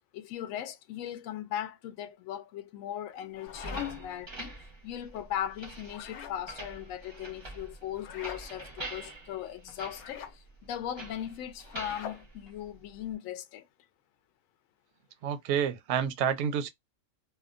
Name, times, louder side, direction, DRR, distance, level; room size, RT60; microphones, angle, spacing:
voice 1, 0.1-4.5 4.8-13.7, left 11 dB, 70° left, 0.9 m, -38 dB
sound 1, 3.1-4.2 5.8-6.4 7.9-8.4 9.9-10.4 11.6-12.2, left 9 dB, 90° left, 1.1 m, -42 dB
sound 2, 3.5-13.1, right 2 dB, 30° right, 0.5 m, -45 dB
voice 2, 15.2-16.7, right 8 dB, 65° right, 0.7 m, -29 dB
2.8 x 2.1 x 2.4 m
omnidirectional pair, 1.5 m